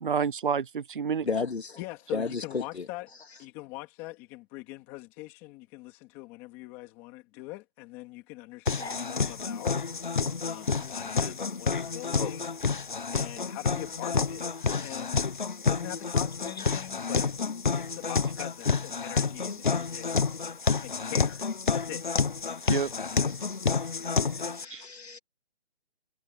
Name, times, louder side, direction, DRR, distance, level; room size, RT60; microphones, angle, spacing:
voice 1, 0.0-1.3 22.7-22.9 24.7-24.8, right 6 dB, 55° right, 0.5 m, -28 dB
voice 2, 1.2-1.8 2.1-2.9 8.8-9.0 12.9-13.0 14.6-15.0 23.3-23.5 24.2-24.3 24.5-25.2, left 4 dB, 85° left, 2.5 m, -34 dB
voice 3, 1.8-3.1 3.4-9.8 10.4-12.5 13.1-14.4 14.8-15.2 15.7-20.4 20.8-22.0, left 20 dB, 10° left, 3.2 m, -43 dB
sound 1, 8.7-24.7, left 5 dB, 50° left, 1.3 m, -29 dB
hypercardioid pair, 175°, 31 cm